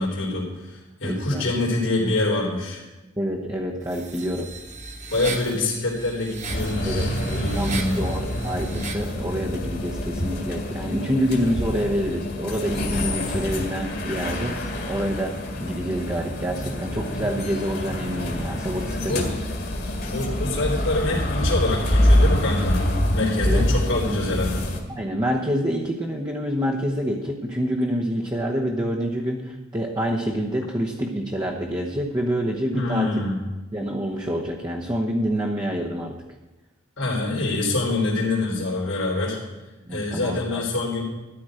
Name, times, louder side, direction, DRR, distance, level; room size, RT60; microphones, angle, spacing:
voice 1, 0.0-2.8 5.1-8.0 18.9-19.3 20.1-22.9 23.1-24.6 32.7-33.4 37.0-39.4 39.9-41.0, left 2 dB, 80° left, -4 dB, 3.5 m, -25 dB
voice 2, 1.0-1.5 3.2-4.5 6.8-19.2 23.4-24.0 24.9-33.2 33.7-36.2 39.8-40.6, equal, 20° right, -3 dB, 1.1 m, -27 dB
sound 1, 3.8-9.1, right 4 dB, 40° right, 1.3 m, -37 dB
sound 2, 6.5-24.8, left 1 dB, 55° left, 2.2 m, -26 dB
13.5 x 10.5 x 5.0 m, 1.1 s
head